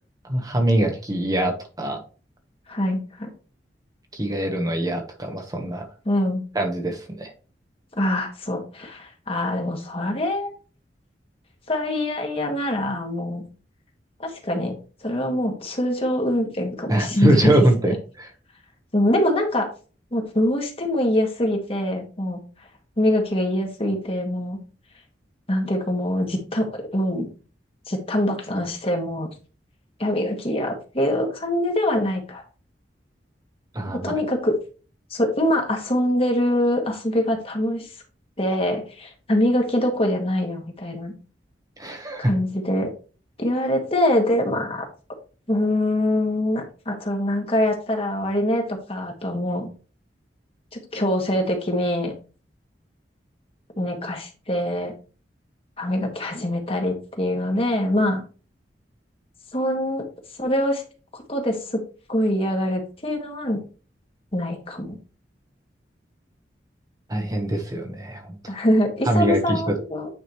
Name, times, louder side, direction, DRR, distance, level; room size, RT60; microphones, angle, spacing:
voice 1, 0.2-2.0 4.1-5.9 6.5-7.3 16.9-18.3 33.7-34.1 41.8-42.3 67.1-68.6 69.1-69.8, right 1 dB, 20° right, 2 dB, 1.1 m, -23 dB
voice 2, 2.7-3.3 6.1-6.4 8.0-10.5 11.7-13.4 14.2-14.7 15.0-17.5 18.9-19.7 20.1-22.4 23.0-24.6 25.5-27.3 27.9-29.3 30.0-32.4 33.9-34.6 35.1-37.9 38.4-41.1 42.2-42.9 43.4-44.8 45.5-49.7 50.7-52.1 53.8-54.9 55.8-58.2 59.5-60.1 60.4-60.8 61.1-61.8 62.1-63.6 64.3-65.0 68.5-70.1, left 1 dB, 35° left, 2 dB, 1.8 m, -24 dB
9.4 x 5.0 x 3.1 m, 0.37 s
head